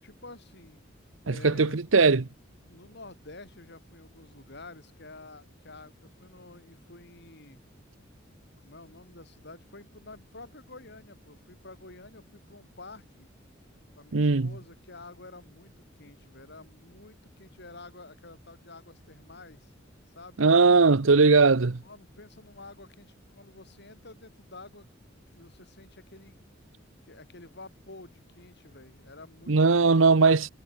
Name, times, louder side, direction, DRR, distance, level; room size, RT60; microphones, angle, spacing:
voice 1, 0.0-0.9 1.3-1.8 2.7-7.6 8.6-13.3 13.9-19.7 20.1-20.5 21.8-24.9 25.4-26.4 27.1-30.1, left 2 dB, 60° left, 7.6 m, -49 dB
voice 2, 1.3-2.3 14.1-14.5 20.4-21.8 29.5-30.5, right 4 dB, 80° right, 0.9 m, -20 dB
head